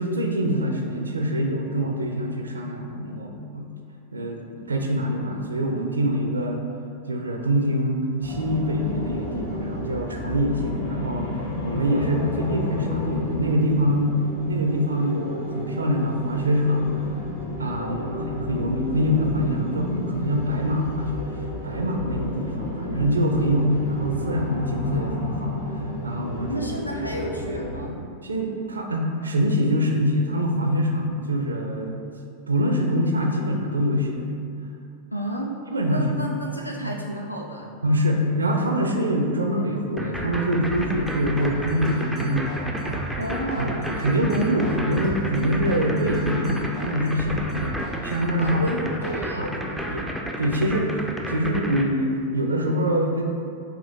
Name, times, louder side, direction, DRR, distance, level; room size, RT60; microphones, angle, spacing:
voice 1, 0.0-3.7 4.1-6.6 7.1-12.2 12.5-16.9 17.6-21.3 21.6-25.5 26.0-26.7 28.2-32.0 32.5-34.3 35.7-36.1 36.8-36.9 37.8-43.1 43.6-48.6 49.4-49.5 49.9-50.1 50.4-50.9 51.2-53.2, equal, 75° right, 2 dB, 0.4 m, -24 dB
sound 1, 8.2-27.8, left 2 dB, 50° left, 0.9 m, -31 dB
voice 2, 11.9-12.6 17.8-18.2 26.5-28.0 35.1-35.6 35.8-37.7 43.2-44.0 48.3-50.0, equal, 90° left, 0 dB, 0.3 m, -32 dB
sound 2, 40.0-51.8, equal, ahead, 0.3 m, -31 dB
sound 3, 40.8-49.2, left 1 dB, 35° left, 1.2 m, -39 dB
5.0 x 2.4 x 2.8 m, 2.3 s
figure-of-eight pair, 90°, 0 cm